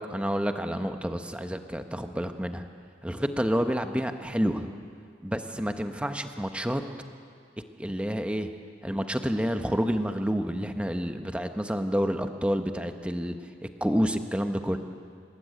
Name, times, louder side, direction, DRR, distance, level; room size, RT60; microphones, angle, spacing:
voice 1, 0.0-2.7 3.0-4.7 5.2-6.8 7.8-8.5 8.8-13.4 13.8-14.8, equal, 5° right, 6 dB, 1.2 m, -29 dB
28.0 x 19.5 x 9.1 m, 2.2 s
head